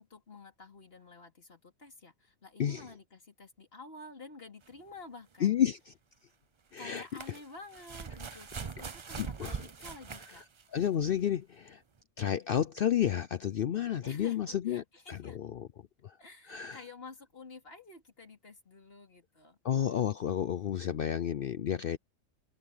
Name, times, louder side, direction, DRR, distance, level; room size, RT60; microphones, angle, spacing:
voice 1, 0.0-5.6 6.8-10.4 14.0-15.4 16.2-19.6, left 3 dB, 45° left, 3.3 m, -50 dB
sound 1, 4.7-4.8 6.7-11.0 12.0-12.1, right 5 dB, 40° right, 0.4 m, -42 dB
voice 2, 5.4-5.9 6.7-7.1 9.2-9.6 10.7-11.8 12.2-15.7 16.0-16.2 16.5-16.8 19.6-22.0, left 10 dB, 60° left, 0.6 m, -31 dB
omnidirectional pair, 1.4 m